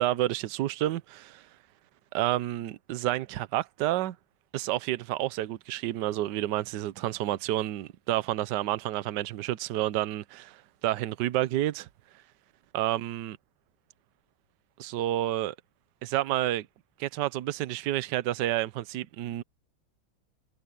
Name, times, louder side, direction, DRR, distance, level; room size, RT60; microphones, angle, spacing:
voice 1, 0.0-1.4 2.1-4.2 4.5-11.9 12.7-13.4 14.8-15.5 16.0-16.7 17.0-19.4, right 14 dB, 65° right, 1.3 m, -29 dB
omnidirectional pair, 2.2 m